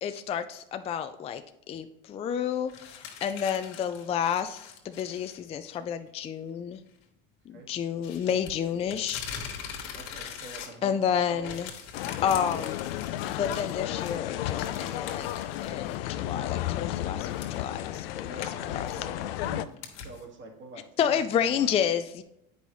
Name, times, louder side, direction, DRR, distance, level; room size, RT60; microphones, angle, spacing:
voice 1, 0.0-1.4 1.7-6.8 7.5-9.3 10.8-11.7 12.2-12.8 13.4-15.3 15.6-18.9 21.0-22.2, left 8 dB, 20° left, 8 dB, 0.4 m, -30 dB
sound 1, 2.7-5.4 5.7-5.8 8.0-11.0 11.3-16.0 16.4-16.5 17.2-20.2, left 7 dB, 65° left, 1.6 m, -43 dB
voice 2, 9.9-11.0 11.3-11.6 18.2-19.7 20.0-21.7, right 3 dB, 40° right, 2 dB, 1.7 m, -45 dB
sound 2, 11.9-19.7, left 13 dB, 80° left, 0.5 m, -33 dB
8.3 x 5.4 x 3.1 m, 0.82 s
supercardioid pair, 105°, 29 cm